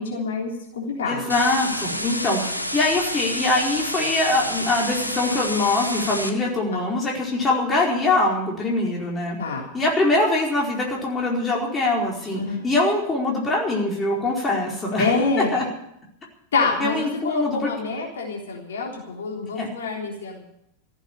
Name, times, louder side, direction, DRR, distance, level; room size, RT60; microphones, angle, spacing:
voice 1, 0.0-1.2 9.4-9.7 12.3-12.6 15.0-15.5 16.5-20.4, left 4 dB, 65° left, -1 dB, 3.6 m, -26 dB
voice 2, 1.1-9.4 9.7-15.6 16.8-17.7 19.6-19.7, left 2 dB, 20° left, -2 dB, 4.6 m, -23 dB
sound 1, 1.3-6.3, left 1 dB, 90° left, 1.2 m, -29 dB
15.0 x 8.6 x 10.0 m, 0.78 s
figure-of-eight pair, 90°, 0 cm